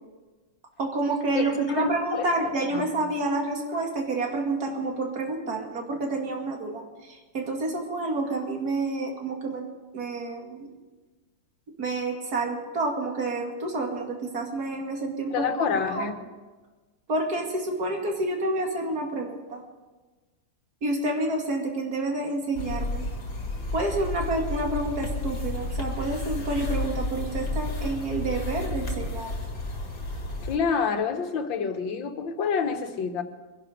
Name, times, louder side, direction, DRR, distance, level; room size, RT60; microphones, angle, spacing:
voice 1, 0.8-9.6 9.9-10.7 11.8-16.1 17.1-19.6 20.8-23.1 23.7-29.4, right 2 dB, 55° right, 1 dB, 2.8 m, -29 dB
voice 2, 1.3-2.3 2.7-2.8 15.3-16.2 30.4-33.2, left 5 dB, 90° left, 6 dB, 2.0 m, -28 dB
sound 1, 22.5-30.6, left 2 dB, 50° left, 2.5 m, -32 dB
23.5 x 11.0 x 5.0 m, 1.3 s
omnidirectional pair, 2.0 m